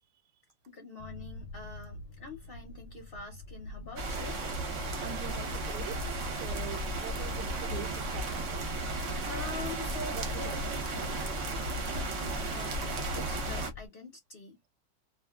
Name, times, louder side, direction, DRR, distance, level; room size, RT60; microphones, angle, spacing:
voice 1, 0.7-4.4 9.3-14.6, left 3 dB, 50° left, 0.7 m, -45 dB
sound 1, 1.0-13.9, left 1 dB, 80° left, 1.1 m, -47 dB
sound 2, 4.0-13.7, right 2 dB, 55° right, 1.0 m, -34 dB
voice 2, 5.0-8.5 10.1-10.8, right 13 dB, 80° right, 1.1 m, -44 dB
2.6 x 2.4 x 2.3 m
omnidirectional pair, 1.7 m